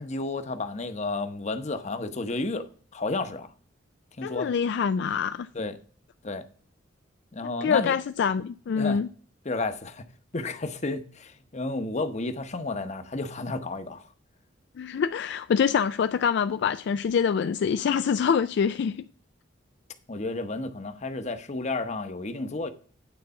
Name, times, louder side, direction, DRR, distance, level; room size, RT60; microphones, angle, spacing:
voice 1, 0.0-2.7 2.9-3.5 4.2-4.5 5.5-5.8 6.2-6.5 7.3-8.0 8.7-9.0 9.4-10.1 10.3-14.0 20.1-22.7, left 3 dB, 40° left, 0.8 m, -31 dB
voice 2, 4.2-5.5 7.6-9.1 14.8-19.0, left 6 dB, 65° left, 0.3 m, -25 dB
9.2 x 3.9 x 6.8 m
head